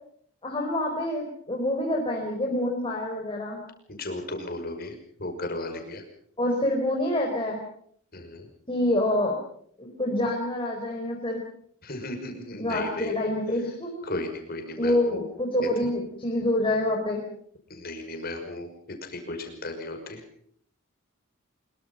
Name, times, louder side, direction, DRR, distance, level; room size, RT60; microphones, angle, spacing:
voice 1, 0.4-3.6 6.4-7.6 8.7-9.4 9.8-11.4 12.6-14.1 14.8-17.2, left 1 dB, 25° left, 0 dB, 4.5 m, -27 dB
voice 2, 3.9-4.9 5.2-6.0 8.1-8.5 11.8-13.1 14.0-15.2 17.7-18.7 19.0-20.2, left 2 dB, 45° left, 5 dB, 5.8 m, -35 dB
25.0 x 23.0 x 5.7 m, 0.63 s
head